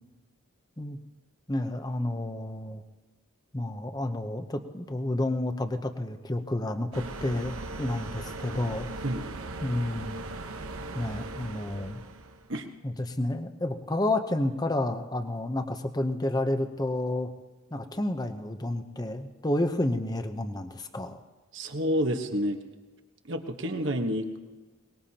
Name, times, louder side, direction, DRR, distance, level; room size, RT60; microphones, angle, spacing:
voice 1, 1.5-2.8 3.5-8.9 9.6-10.2 10.9-12.0 12.8-17.3 17.7-21.2, left 1 dB, 20° left, 7 dB, 0.8 m, -30 dB
sound 1, 6.9-12.5, right 2 dB, 80° right, 1.0 m, -39 dB
voice 2, 9.0-9.3 12.5-12.7 21.5-22.6 23.3-24.4, equal, 60° right, 5 dB, 1.3 m, -29 dB
22.5 x 20.5 x 2.9 m, 1.3 s
head